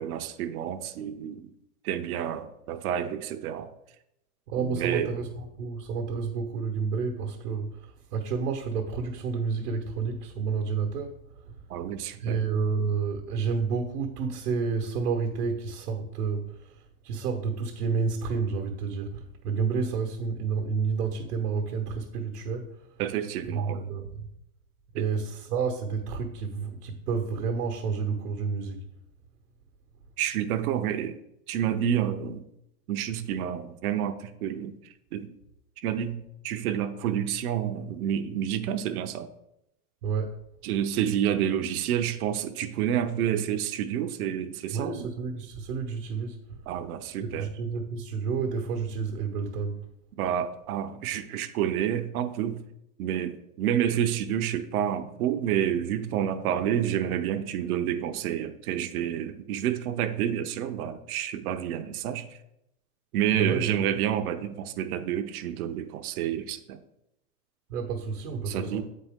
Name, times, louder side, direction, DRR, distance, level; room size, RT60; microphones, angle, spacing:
voice 1, 0.0-1.5 1.8-3.7 4.6-5.1 11.7-12.4 23.0-23.8 25.0-25.1 30.2-31.2 31.5-32.4 32.9-34.8 35.1-35.3 35.8-39.3 40.6-45.1 46.7-47.5 50.2-52.6 53.0-62.4 63.1-66.8 68.5-68.8, right 10 dB, 70° right, 0.7 m, -29 dB
voice 2, 4.5-5.3 5.6-11.2 12.2-22.8 23.5-24.3 24.9-28.8 40.0-40.3 44.7-46.4 47.2-49.8 63.3-63.8 67.7-68.8, right 5 dB, 90° right, 1.1 m, -30 dB
8.3 x 4.3 x 3.5 m
supercardioid pair, 150°, 45 cm